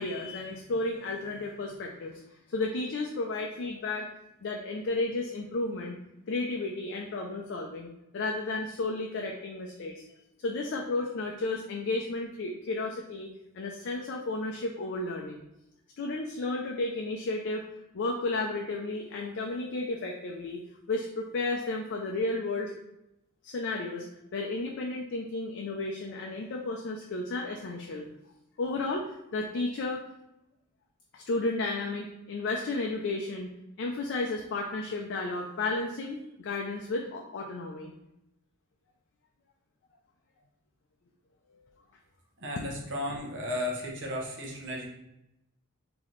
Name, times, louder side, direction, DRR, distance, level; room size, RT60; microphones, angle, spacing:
voice 1, 0.0-2.2 2.5-4.1 4.4-6.0 6.3-10.0 10.4-13.3 13.5-15.4 16.0-17.7 17.9-20.6 20.9-22.8 23.4-24.1 24.3-28.0 28.6-30.0 31.1-33.5 33.8-37.9, left 2 dB, 55° left, 1 dB, 0.4 m, -33 dB
voice 2, 42.4-44.9, left 1 dB, 60° right, -1 dB, 0.9 m, -34 dB
4.0 x 2.9 x 3.1 m, 0.87 s
head